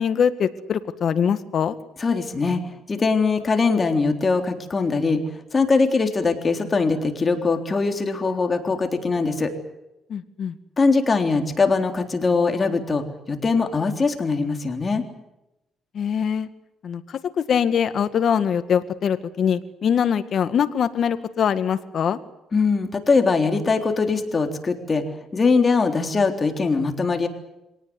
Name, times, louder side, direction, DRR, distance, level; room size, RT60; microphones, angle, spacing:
voice 1, 0.0-1.8 10.1-10.6 15.9-16.5 16.8-22.2, left 7 dB, 60° left, 11 dB, 1.9 m, -23 dB
voice 2, 2.0-2.6 2.9-5.2 5.5-9.5 10.8-15.1 22.5-25.0 25.3-27.3, left 4 dB, 35° left, 5 dB, 3.7 m, -21 dB
25.0 x 18.5 x 9.8 m, 0.94 s
cardioid pair, 90°, 0 cm